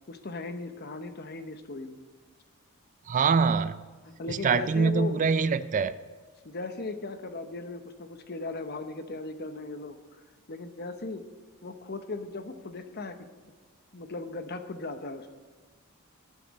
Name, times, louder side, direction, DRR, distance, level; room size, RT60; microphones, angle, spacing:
voice 1, 0.1-2.0 4.2-5.2 5.7-5.9 6.4-10.0 10.5-11.2 11.6-13.2 13.9-15.3, left 3 dB, 45° left, 8 dB, 0.9 m, -37 dB
voice 2, 3.1-3.8 4.3-5.9, right 5 dB, 35° right, 14 dB, 0.3 m, -24 dB
18.5 x 9.9 x 4.2 m, 1.5 s
head